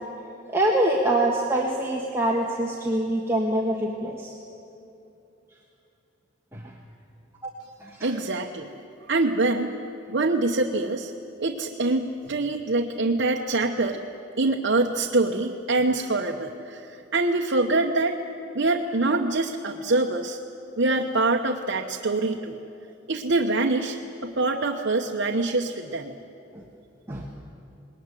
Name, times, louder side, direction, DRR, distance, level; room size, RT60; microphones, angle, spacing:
voice 1, 0.5-4.3 6.5-6.7 7.4-7.5 7.8-8.1 26.5-26.6 27.1-27.3, right 1 dB, 15° right, -2 dB, 1.5 m, -25 dB
voice 2, 8.0-8.7 9.1-9.7 10.1-11.1 11.4-14.0 14.4-18.2 18.5-20.4 20.8-22.6 23.1-24.0 24.2-26.1, right 2 dB, 65° right, 1 dB, 1.0 m, -24 dB
20.0 x 19.0 x 9.9 m, 2.8 s
head